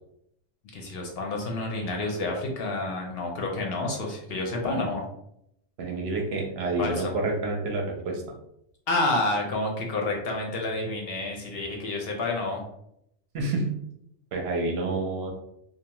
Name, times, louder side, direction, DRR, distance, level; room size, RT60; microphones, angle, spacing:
voice 1, 0.7-5.0 6.8-7.1 8.9-12.6, left 2 dB, 60° left, 1 dB, 0.7 m, -29 dB
voice 2, 5.8-8.2 13.3-13.7 14.3-15.3, right 2 dB, 65° right, 2 dB, 0.7 m, -28 dB
2.6 x 2.0 x 2.8 m, 0.75 s
omnidirectional pair, 1.2 m